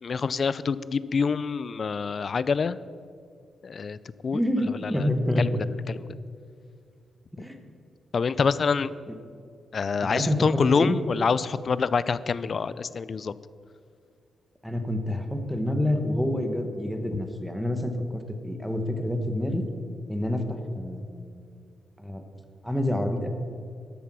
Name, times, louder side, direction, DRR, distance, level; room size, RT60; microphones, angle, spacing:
voice 1, 0.0-2.8 3.6-4.0 4.2-4.4 4.8-5.1 5.4-5.5 5.9-6.0 8.1-8.9 9.7-13.3, left 5 dB, 45° left, 17 dB, 0.4 m, -26 dB
voice 2, 4.3-5.6 7.4-7.6 9.1-9.2 10.0-11.0 14.6-19.6 20.1-21.3 22.0-22.2 22.6-23.3, left 1 dB, ahead, 5 dB, 1.1 m, -27 dB
12.5 x 8.4 x 6.2 m, 2.3 s
wide cardioid pair, 130°, 0 cm